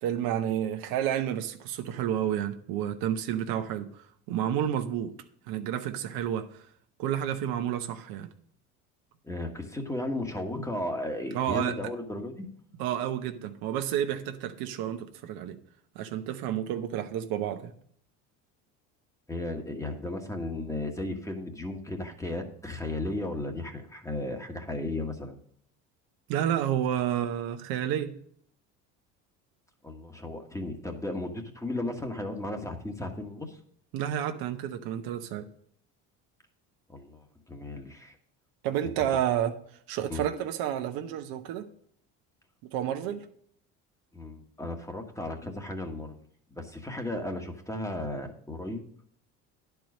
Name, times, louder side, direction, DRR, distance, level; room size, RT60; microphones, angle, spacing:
voice 1, 0.0-3.9 4.3-5.1 5.5-6.6 7.0-8.3 11.3-11.7 12.8-15.6 15.9-17.7 26.3-28.1 33.9-35.5 38.6-39.5 39.9-41.7 42.6-43.2, right 10 dB, 70° right, 7 dB, 1.0 m, -30 dB
voice 2, 9.2-12.5 19.3-25.4 29.8-33.6 36.9-38.2 40.1-40.2 44.1-46.2 46.5-48.8, left 1 dB, 10° left, 4 dB, 1.5 m, -35 dB
10.5 x 4.7 x 6.4 m, 0.64 s
supercardioid pair, 85°, 37 cm